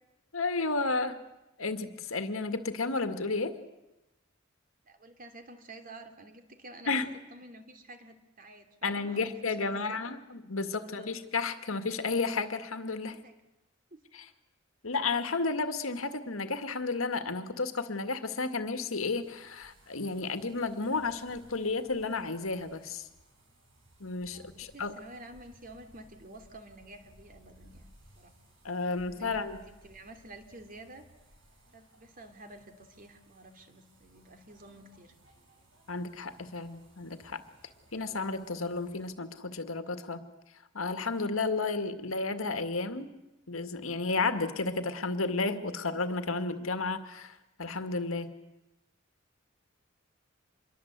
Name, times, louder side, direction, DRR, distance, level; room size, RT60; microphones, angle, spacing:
voice 1, 0.3-1.2 1.6-3.6 6.9-7.1 8.8-13.2 14.1-14.2 14.8-23.1 24.0-24.9 28.6-29.6 35.9-37.4 37.9-40.2 40.7-43.1 43.5-48.3, left 3 dB, 85° left, 9 dB, 2.0 m, -32 dB
voice 2, 4.8-7.0 7.3-10.0 10.7-11.1 13.1-13.4 13.9-14.0 24.2-28.3 28.9-31.0 31.7-35.1, right 2 dB, 45° right, 6 dB, 2.8 m, -50 dB
sound 1, 19.2-39.1, right 1 dB, 65° right, 7.9 m, -61 dB
26.5 x 22.0 x 8.2 m, 0.96 s
head